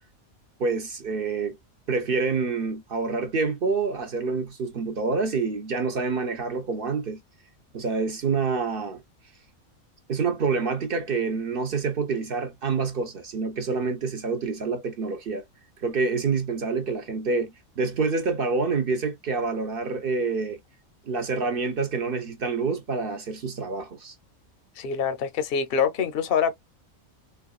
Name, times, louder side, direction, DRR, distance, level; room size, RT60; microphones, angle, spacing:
voice 1, 0.6-1.6 1.9-7.2 7.7-9.0 10.1-15.4 15.8-20.6 21.1-24.1, right 4 dB, 50° right, 0.7 m, -27 dB
voice 2, 24.8-26.5, left 7 dB, 50° left, 0.8 m, -25 dB
4.6 x 2.3 x 2.3 m
omnidirectional pair, 1.5 m